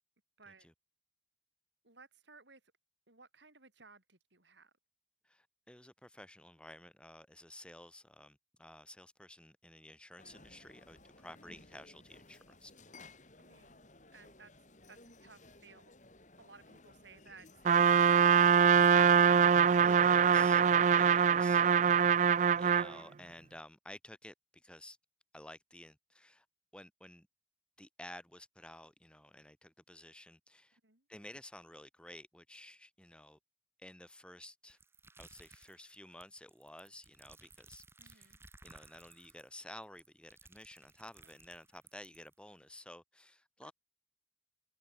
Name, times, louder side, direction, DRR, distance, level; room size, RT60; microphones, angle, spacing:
voice 1, 1.8-2.6 3.1-4.7 13.4-13.8 14.1-15.9 16.4-19.3 30.8-31.1 38.0-38.4 43.6-43.7, right 4 dB, 70° right, 6.2 m, -59 dB
voice 2, 5.2-12.7 19.8-21.6 22.6-25.0 25.3-26.5 26.7-27.3 27.8-30.8 31.1-33.4 33.8-34.8 35.2-38.4 38.6-43.7, left 1 dB, 5° left, 2.4 m, -53 dB
sound 1, 10.2-19.3, left 2 dB, 40° left, 5.0 m, -58 dB
Trumpet, 17.6-22.9, right 7 dB, 40° right, 0.3 m, -24 dB
sound 2, 34.7-42.3, right 3 dB, 15° right, 2.2 m, -59 dB
head